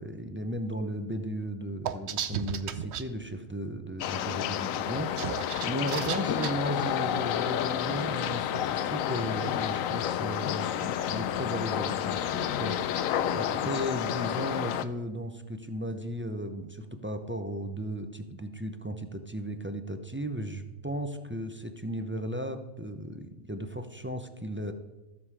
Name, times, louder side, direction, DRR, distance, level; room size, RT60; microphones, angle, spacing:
voice 1, 0.0-24.7, equal, 15° right, 8 dB, 0.4 m, -35 dB
sound 1, 1.8-3.0 5.0-6.5, right 8 dB, 60° right, 0.9 m, -33 dB
sound 2, 4.0-14.9, left 10 dB, 85° left, 1.0 m, -30 dB
14.5 x 7.4 x 4.8 m, 1.1 s
omnidirectional pair, 1.4 m